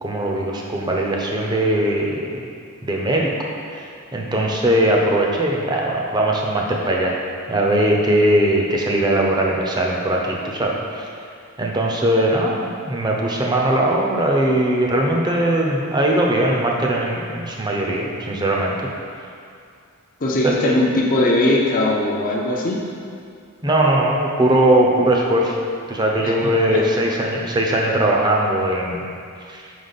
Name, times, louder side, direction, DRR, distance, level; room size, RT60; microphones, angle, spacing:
voice 1, 0.0-2.4 2.8-3.3 3.7-7.1 7.5-11.0 11.6-18.8 20.4-20.9 23.6-25.6 25.9-29.0 29.5-29.6, right 1 dB, 20° right, -1 dB, 0.6 m, -20 dB
voice 2, 20.2-22.8 26.2-26.8, left 1 dB, 40° left, -2 dB, 0.6 m, -20 dB
5.0 x 4.9 x 4.0 m, 2.4 s
head